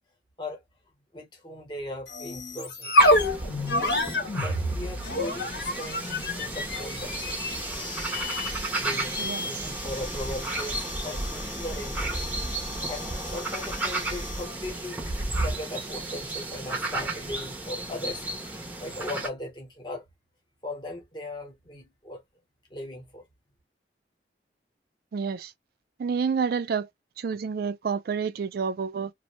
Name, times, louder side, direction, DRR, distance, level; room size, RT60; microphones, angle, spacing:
voice 1, 1.1-3.1 4.3-7.4 8.3-12.2 12.9-15.0 15.4-18.3 18.8-20.0 20.6-22.2 22.7-23.2, left 1 dB, 25° left, 0.9 m, -38 dB
sound 1, 2.1-14.5, left 1 dB, 65° left, 0.9 m, -29 dB
sound 2, 3.0-19.3, right 2 dB, 10° right, 0.6 m, -33 dB
voice 2, 9.2-9.5 25.1-25.5 26.0-26.9 27.2-29.1, right 6 dB, 55° right, 0.3 m, -29 dB
2.5 x 2.1 x 3.0 m
head